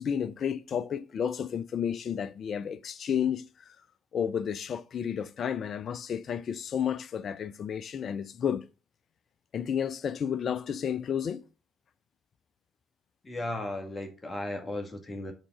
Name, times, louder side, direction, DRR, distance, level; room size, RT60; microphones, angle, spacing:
voice 1, 0.0-3.5 4.1-8.7 9.5-11.4, left 8 dB, 45° left, 0.5 m, -31 dB
voice 2, 13.2-15.3, left 1 dB, 25° left, 1.6 m, -35 dB
6.7 x 3.7 x 5.8 m
figure-of-eight pair, 50°, 0 cm